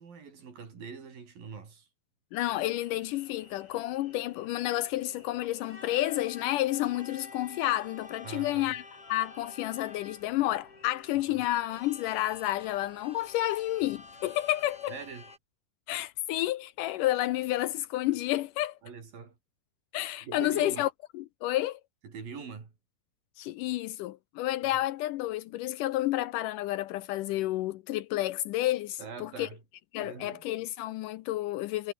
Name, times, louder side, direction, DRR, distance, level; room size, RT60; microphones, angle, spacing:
voice 1, 0.0-1.9 8.2-8.8 11.3-11.4 14.9-15.3 18.8-19.4 20.2-20.9 22.0-22.7 29.0-29.6 30.0-30.5, right 5 dB, 75° right, 6.3 m, -43 dB
voice 2, 2.3-8.8 9.1-14.9 15.9-18.8 19.9-20.9 21.4-21.8 23.4-29.5 29.9-31.9, left 15 dB, 80° left, 2.1 m, -30 dB
sound 1, 2.4-15.4, left 3 dB, 40° left, 7.3 m, -50 dB
omnidirectional pair, 4.0 m